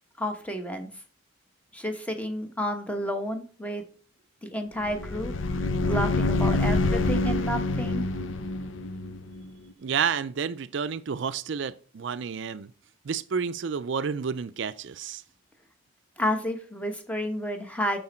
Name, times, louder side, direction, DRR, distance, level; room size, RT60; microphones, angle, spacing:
voice 1, 0.2-0.9 1.7-3.8 4.4-5.3 5.8-8.0 16.2-18.0, equal, 5° left, 1.2 m, -31 dB
sound 1, 4.8-9.5, left 2 dB, 70° left, 0.7 m, -26 dB
voice 2, 9.8-12.7 13.0-15.2, right 6 dB, 60° right, 0.4 m, -30 dB
9.6 x 7.0 x 4.3 m
head